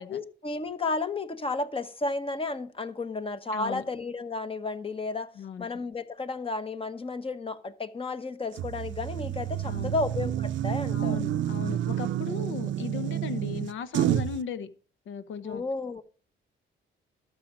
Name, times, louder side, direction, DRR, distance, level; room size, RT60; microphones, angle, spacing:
voice 1, 0.0-5.3 5.6-11.2 12.5-12.6 15.4-16.0, left 3 dB, 25° left, 1.1 m, -32 dB
voice 2, 3.5-3.8 5.4-5.7 9.6-9.9 10.9-14.7 15.1-15.6, left 6 dB, 80° left, 1.0 m, -36 dB
sound 1, 8.6-14.4, right 11 dB, 70° right, 0.5 m, -29 dB
12.5 x 6.6 x 6.1 m
cardioid pair, 90°, 20 cm